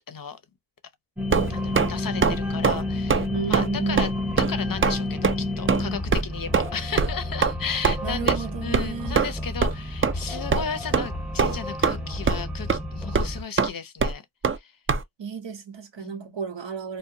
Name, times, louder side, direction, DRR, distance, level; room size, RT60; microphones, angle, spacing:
voice 1, 0.1-0.4 1.5-4.1 4.4-14.2 14.5-14.7 16.0-16.3, left 6 dB, 55° left, 0.5 m, -34 dB
sound 1, 1.2-13.4, left 1 dB, ahead, 0.8 m, -31 dB
sound 2, 1.3-1.9 2.2-2.4 2.6-2.8 3.1-3.3 3.5-3.7 4.0-4.1 4.4-4.5 4.8-5.0 5.2-5.3 5.7-5.8 6.1-6.2 6.5-6.7 7.0-7.1 7.4-7.5 7.8-8.0 8.3-8.4 8.7-8.9 9.1-9.3 9.6-9.7 10.0-10.1 10.5-10.6 10.9-11.1 11.4-12.0 12.3-12.4 12.7-12.8 13.1-13.3 13.6-13.7 14.0-14.1 14.4-14.6 14.9-15.0, right 5 dB, 30° right, 0.4 m, -21 dB
voice 2, 3.3-4.1 8.0-9.3 15.2-17.0, right 6 dB, 85° right, 0.8 m, -32 dB
2.7 x 2.1 x 2.5 m
wide cardioid pair, 65°, 43 cm